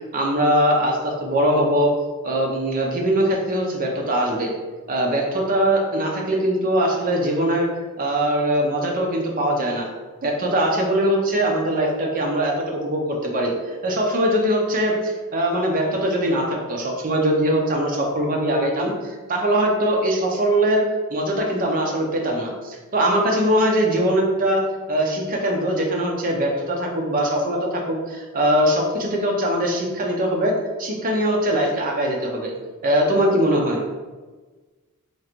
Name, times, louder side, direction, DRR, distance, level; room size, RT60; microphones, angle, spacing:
voice 1, 0.1-1.9 2.2-4.5 4.9-7.7 8.0-9.9 10.2-20.8 21.1-24.6 24.9-30.5 30.8-32.5 32.8-33.8, right 1 dB, 40° right, 0 dB, 0.7 m, -21 dB
3.1 x 2.5 x 4.3 m, 1.3 s
head